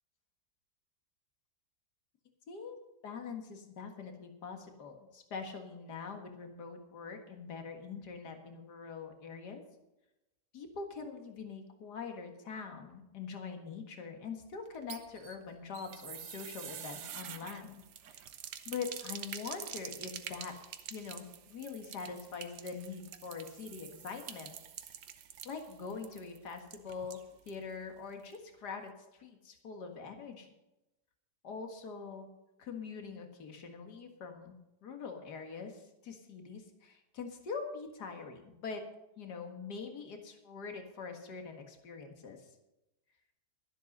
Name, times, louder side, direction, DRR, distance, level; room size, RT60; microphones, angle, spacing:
voice 1, 2.5-2.8 3.0-9.6 10.5-17.8 18.1-18.2 18.7-20.6 20.9-24.6 25.5-27.2 27.5-28.9 29.2-30.5 31.4-32.3 32.6-34.6 34.8-38.8 39.2-42.5, left 5 dB, 75° left, 4 dB, 2.2 m, -43 dB
sound 1, 14.7-27.6 27.9-28.0 28.3-28.4, right 9 dB, 80° right, 1.5 m, -47 dB
12.5 x 11.5 x 5.4 m, 0.93 s
omnidirectional pair, 1.8 m